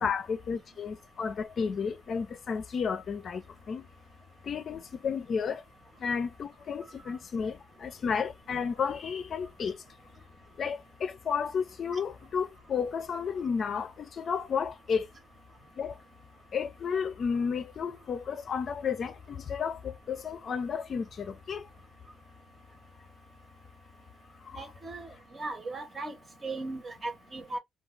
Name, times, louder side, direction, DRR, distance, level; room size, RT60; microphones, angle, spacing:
voice 1, 0.0-3.8 4.5-5.6 6.0-9.8 10.6-15.1 15.8-15.9 16.5-21.6, left 6 dB, 55° left, 0.4 m, -32 dB
voice 2, 24.6-25.1 25.4-26.1 26.4-27.6, right 2 dB, 35° right, 0.9 m, -37 dB
2.4 x 2.3 x 3.1 m
cardioid pair, 90°, 0 cm